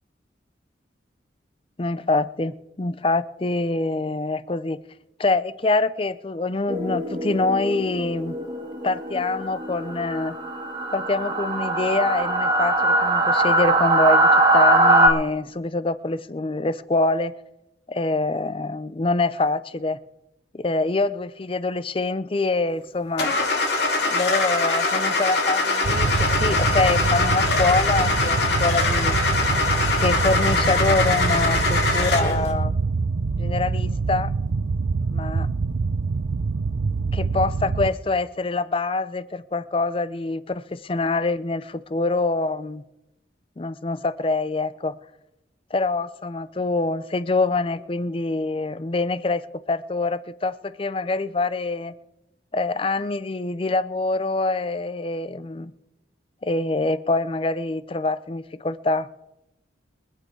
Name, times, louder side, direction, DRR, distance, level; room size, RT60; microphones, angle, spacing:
voice 1, 1.8-4.8 5.2-8.4 8.8-10.4 10.9-17.3 17.9-20.0 20.5-23.3 24.1-29.2 30.0-32.7 33.4-34.3 35.0-35.5 37.1-42.8 43.6-45.0 45.7-52.0 52.5-55.7 56.4-59.1, left 3 dB, 30° left, 16 dB, 0.5 m, -25 dB
sound 1, 6.7-15.1, right 2 dB, 25° right, 2.2 m, -21 dB
Car / Engine starting, 23.2-32.5, left 3 dB, 65° left, 2.7 m, -23 dB
sound 2, 25.8-37.9, right 4 dB, 75° right, 0.5 m, -25 dB
23.5 x 8.5 x 4.9 m, 0.94 s
head